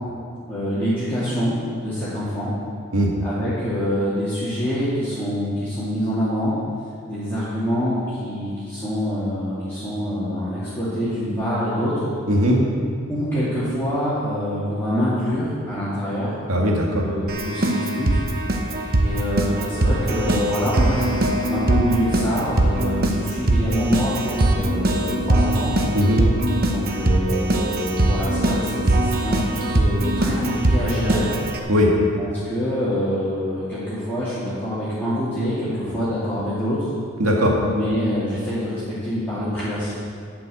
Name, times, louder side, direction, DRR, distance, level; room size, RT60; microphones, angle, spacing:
voice 1, 0.4-2.5 3.2-6.6 7.1-11.9 13.1-16.3 17.0-18.2 19.0-25.7 26.6-31.3 32.2-36.9 37.6-39.9, equal, 10° left, -13 dB, 2.3 m, -25 dB
voice 2, 12.3-12.6 16.5-17.1 25.9-26.2 31.7-31.9 37.2-37.6, equal, 80° right, -2 dB, 2.0 m, -18 dB
Keyboard (musical), 17.3-31.6, right 1 dB, 45° right, 0.9 m, -21 dB
12.0 x 5.9 x 7.8 m, 2.3 s
head